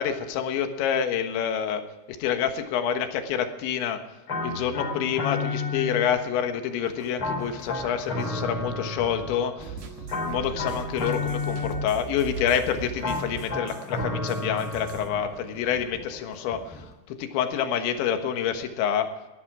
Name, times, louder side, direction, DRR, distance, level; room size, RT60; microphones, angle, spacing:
voice 1, 0.0-1.8 2.2-4.0 4.4-9.8 10.3-19.1, left 8 dB, 75° left, 7 dB, 3.6 m, -27 dB
sound 1, 4.3-6.4 7.2-9.6 10.1-12.2 13.0-15.4, left 3 dB, 30° left, 3.9 m, -31 dB
sound 2, 6.8-16.9, equal, ahead, 2.6 m, -46 dB
sound 3, 9.6-15.1, right 6 dB, 70° right, 3.5 m, -39 dB
19.0 x 13.0 x 4.9 m, 1.1 s
omnidirectional pair, 5.3 m